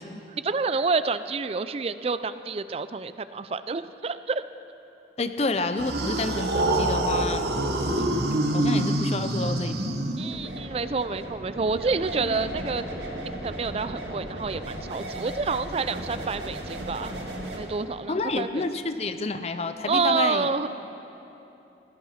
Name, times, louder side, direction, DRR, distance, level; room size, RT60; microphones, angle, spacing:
voice 1, 0.4-4.4 10.2-12.8 13.2-17.1 17.6-18.6 19.9-20.7, right 4 dB, 35° right, 13 dB, 0.4 m, -28 dB
voice 2, 5.2-7.5 8.0-8.1 8.3-10.1 18.1-20.5, left 3 dB, 35° left, 9 dB, 0.6 m, -29 dB
sound 1, 5.8-10.6, right 1 dB, 65° right, 1.0 m, -25 dB
sound 2, 10.3-17.6, right 1 dB, 90° right, 2.0 m, -36 dB
16.5 x 11.5 x 5.8 m, 3.0 s
head